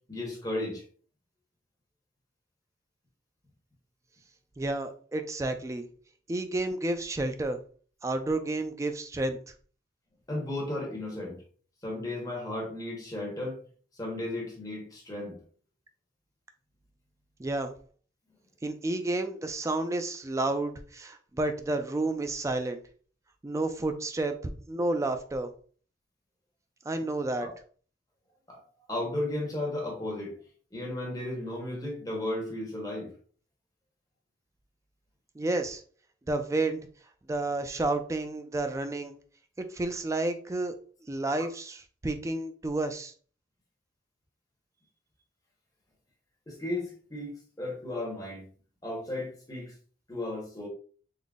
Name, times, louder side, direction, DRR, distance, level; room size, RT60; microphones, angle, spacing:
voice 1, 0.1-0.8 10.3-11.4 11.8-13.6 13.9-15.4 27.4-27.5 28.5-28.6 28.9-30.4 30.7-33.1 41.4-41.5 46.5-47.3 47.6-48.5 48.8-49.7 50.1-50.7, left 1 dB, 20° left, 1.1 m, -34 dB
voice 2, 4.6-5.9 6.3-7.6 8.0-9.4 17.4-17.7 18.6-22.8 23.4-25.5 26.9-27.5 35.4-35.8 36.3-36.8 37.3-39.1 39.7-40.7 41.1-43.1, right 2 dB, 15° right, 0.3 m, -30 dB
3.8 x 2.0 x 3.5 m
head